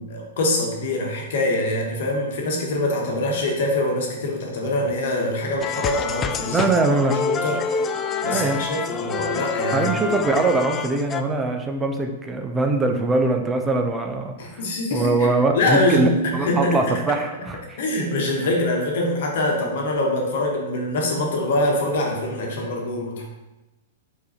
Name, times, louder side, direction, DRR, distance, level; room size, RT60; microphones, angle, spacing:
voice 1, 0.0-6.7 7.3-7.6 8.2-9.9 14.4-15.3 15.5-17.0 17.8-23.2, left 1 dB, 55° left, 0 dB, 1.3 m, -24 dB
sound 1, 5.6-11.2, left 5 dB, 20° left, 0.4 m, -27 dB
voice 2, 6.5-7.2 8.3-8.7 9.7-14.6 14.9-17.8, right 3 dB, 15° right, 4 dB, 0.7 m, -22 dB
4.9 x 4.7 x 4.4 m, 1.0 s
figure-of-eight pair, 105°, 0 cm